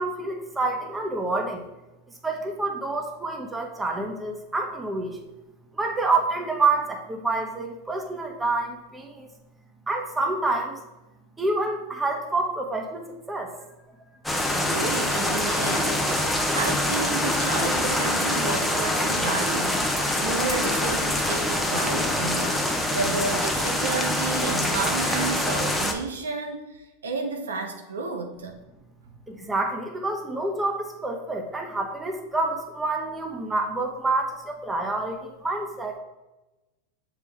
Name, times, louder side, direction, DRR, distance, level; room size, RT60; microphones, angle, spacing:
voice 1, 0.0-1.6 2.2-5.2 5.7-9.3 9.9-10.8 11.4-13.5 29.3-36.0, right 3 dB, 15° right, 2 dB, 1.2 m, -28 dB
sound 1, 14.2-25.9, left 1 dB, 5° left, 0.9 m, -25 dB
voice 2, 14.6-28.6, right 3 dB, 80° right, 4 dB, 0.8 m, -31 dB
6.7 x 4.8 x 3.5 m, 1.1 s
hypercardioid pair, 90°, 0 cm